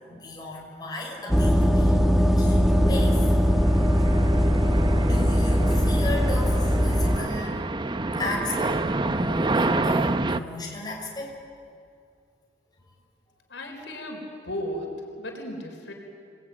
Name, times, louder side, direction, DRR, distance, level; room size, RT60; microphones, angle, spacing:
voice 1, 0.1-3.2 5.0-7.6 8.2-8.9 9.1-11.3, left 2 dB, 25° left, -2 dB, 6.2 m, -35 dB
sound 1, 1.3-7.2, equal, ahead, 1.3 m, -20 dB
sound 2, 2.6-10.4, right 2 dB, 25° right, 0.7 m, -28 dB
voice 2, 13.5-15.9, left 1 dB, 80° left, 2 dB, 4.6 m, -35 dB
28.0 x 20.0 x 9.5 m, 2.3 s
head